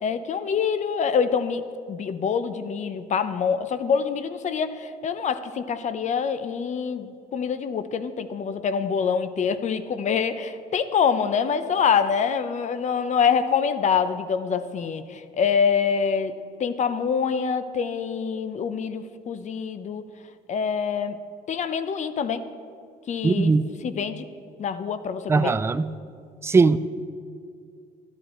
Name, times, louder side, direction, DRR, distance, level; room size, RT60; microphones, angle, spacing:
voice 1, 0.0-1.6 1.9-20.0 20.5-21.2 21.5-22.5 23.1-23.5 23.8-24.3 24.6-25.5, left 6 dB, 45° left, 12 dB, 0.8 m, -25 dB
voice 2, 23.2-23.7 25.3-25.9 26.4-26.8, right 4 dB, 15° right, 13 dB, 0.4 m, -19 dB
13.0 x 11.5 x 4.4 m, 2.3 s
cardioid pair, 110°, 17 cm